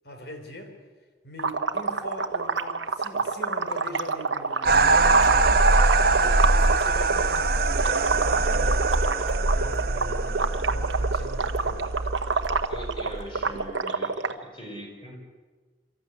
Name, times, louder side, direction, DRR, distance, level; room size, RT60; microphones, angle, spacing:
voice 1, 0.0-0.7 1.2-8.7 9.5-12.0, left 1 dB, 60° left, 5 dB, 3.4 m, -41 dB
sound 1, 1.4-7.4 7.7-14.3, right 4 dB, 80° right, 1.2 m, -27 dB
sound 2, 4.6-13.6, right 3 dB, 55° right, 1.1 m, -23 dB
voice 2, 12.7-15.2, equal, 25° left, 1 dB, 5.1 m, -41 dB
24.5 x 13.5 x 9.5 m, 1.4 s
head